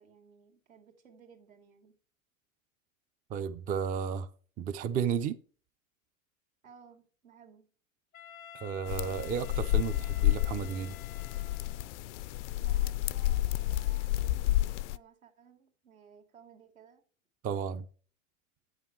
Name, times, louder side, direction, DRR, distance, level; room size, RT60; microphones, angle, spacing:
voice 1, 0.0-1.9 6.6-7.7 12.5-17.0, right 6 dB, 85° right, 2.4 m, -58 dB
voice 2, 3.3-4.3 4.6-5.4 8.5-11.0 17.4-17.9, right 7 dB, 20° right, 0.4 m, -33 dB
Wind instrument woodwind instrument, 8.1-12.0, left 9 dB, 90° left, 0.8 m, -51 dB
sound 1, 8.9-15.0, left 15 dB, 60° left, 0.5 m, -30 dB
8.5 x 6.2 x 4.6 m
hypercardioid pair, 105°, 40 cm